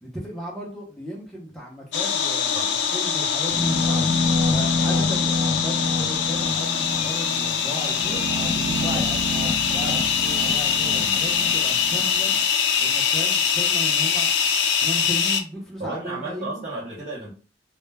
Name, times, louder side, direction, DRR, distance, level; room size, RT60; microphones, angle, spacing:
voice 1, 0.0-4.2 4.5-8.2 8.5-9.4 9.7-12.3 12.8-14.5 14.8-16.6, equal, ahead, 0.5 m, -35 dB
sound 1, 1.9-15.4, left 7 dB, 80° left, 0.4 m, -23 dB
sound 2, 3.5-12.4, left 2 dB, 75° right, 0.8 m, -27 dB
voice 2, 10.8-11.2 15.8-17.3, right 2 dB, 35° right, 0.6 m, -33 dB
2.1 x 2.1 x 3.2 m
head